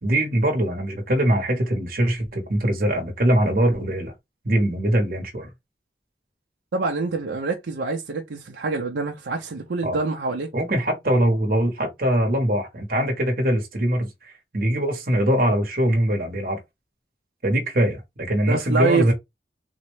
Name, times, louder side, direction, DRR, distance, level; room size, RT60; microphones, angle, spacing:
voice 1, 0.0-4.1 4.4-5.5 9.8-10.0 10.5-16.6 17.4-19.1, right 1 dB, 50° right, 1.0 m, -22 dB
voice 2, 6.7-10.5 18.5-19.1, right 4 dB, 80° right, 0.6 m, -25 dB
3.9 x 2.1 x 3.1 m
head